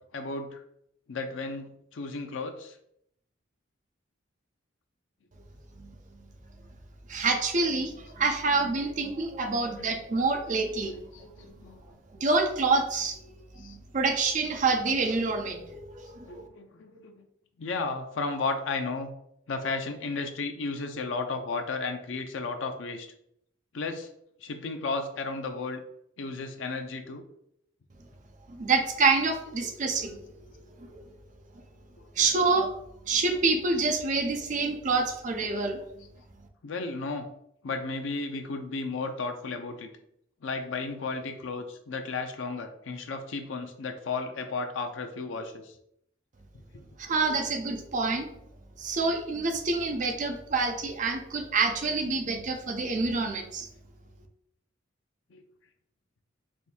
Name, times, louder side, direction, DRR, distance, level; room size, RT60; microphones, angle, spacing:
voice 1, 0.1-0.6 1.1-2.8 8.6-9.0 9.3-10.0 10.9-12.0 13.6-13.8 16.3-17.2 17.6-19.1 19.5-23.1 23.7-24.1 24.4-25.8 26.2-27.2 29.6-29.7 32.0-32.3 34.9-35.0 35.4-35.5 36.6-37.3 37.6-39.9 40.4-45.7 46.7-46.8 55.3-55.4, left 3 dB, 75° left, 6 dB, 0.5 m, -34 dB
voice 2, 7.1-10.9 12.1-13.2 13.6-16.4 28.5-30.5 30.8-31.0 32.2-32.7 33.1-35.8 47.0-48.3 48.8-53.7, right 3 dB, 40° right, 5 dB, 0.5 m, -27 dB
3.5 x 2.6 x 4.2 m, 0.74 s
head